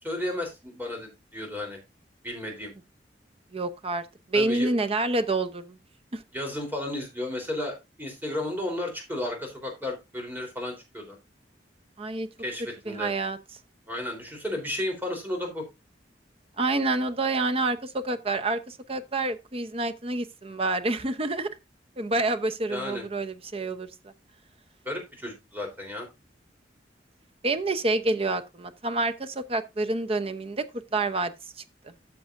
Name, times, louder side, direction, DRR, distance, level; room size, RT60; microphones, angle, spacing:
voice 1, 0.0-1.8 2.2-2.7 4.3-4.7 6.3-11.2 12.4-13.1 13.9-15.6 22.7-23.0 24.9-26.1, left 1 dB, 10° right, 3.6 m, -33 dB
voice 2, 3.5-4.0 4.3-5.8 6.1-6.2 12.0-12.3 12.9-13.4 16.6-21.5 22.0-23.9 27.4-30.7 30.9-31.3 31.8-31.9, right 2 dB, 35° right, 0.8 m, -28 dB
13.5 x 6.9 x 2.6 m
head